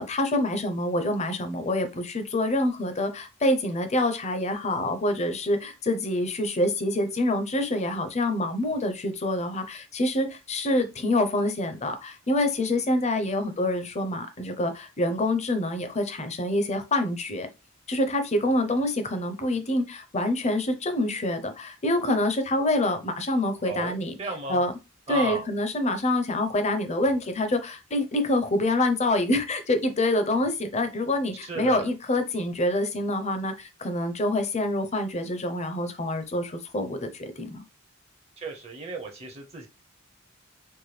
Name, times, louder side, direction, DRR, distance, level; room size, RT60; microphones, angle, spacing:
voice 1, 0.0-17.5 17.9-24.2 24.5-24.7 25.1-37.6, left 1 dB, 35° left, 8 dB, 0.6 m, -26 dB
voice 2, 23.6-24.6 25.1-25.4 31.4-31.9 38.4-39.7, right 3 dB, 30° right, 4 dB, 0.6 m, -34 dB
4.4 x 2.2 x 3.2 m, 0.26 s
head